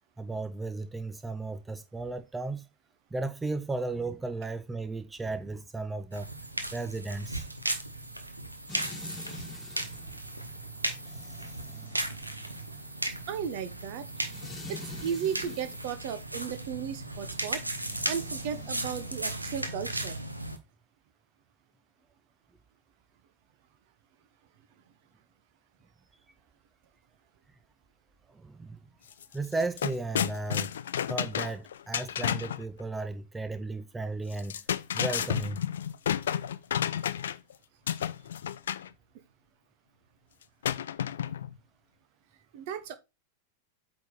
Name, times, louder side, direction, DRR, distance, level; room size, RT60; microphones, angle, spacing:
voice 1, 0.2-2.7 3.1-6.3 6.7-7.4 28.3-28.8 29.3-30.7 31.1-34.6 34.9-35.6, right 3 dB, 10° right, 0.5 m, -35 dB
sound 1, 6.1-20.6, right 1 dB, 85° right, 0.9 m, -36 dB
sound 2, 8.7-15.9 17.8-19.2, left 3 dB, 20° left, 1.5 m, -47 dB
voice 2, 13.3-14.1 14.7-17.6 18.1-20.2 42.5-42.9, right 8 dB, 50° right, 1.0 m, -35 dB
sound 3, 29.1-29.2 29.5-32.6 34.3-37.5 37.9-38.9 40.6-41.5, left 9 dB, 65° left, 0.4 m, -31 dB
8.5 x 3.9 x 3.9 m
figure-of-eight pair, 90°, 0 cm